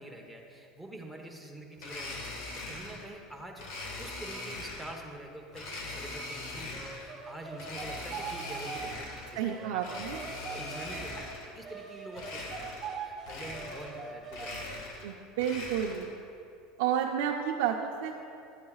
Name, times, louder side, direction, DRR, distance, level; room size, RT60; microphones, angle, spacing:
voice 1, 0.0-3.7 4.0-10.0 10.5-15.0 15.6-15.7, right 1 dB, ahead, 0 dB, 1.0 m, -46 dB
Domestic sounds home sounds, 1.8-3.1 3.6-5.0 5.5-7.1 7.5-9.4 9.8-11.5 12.1-13.0 13.2-14.0 14.3-16.1, left 2 dB, 65° left, 1.6 m, -41 dB
sound 1, 6.7-11.2 11.6-14.8, right 5 dB, 30° right, 1.3 m, -42 dB
voice 2, 9.3-10.2 15.0-16.1 16.8-18.1, right 9 dB, 75° right, 0 dB, 0.6 m, -31 dB
12.0 x 9.4 x 2.4 m, 2.6 s
supercardioid pair, 135°, 0 cm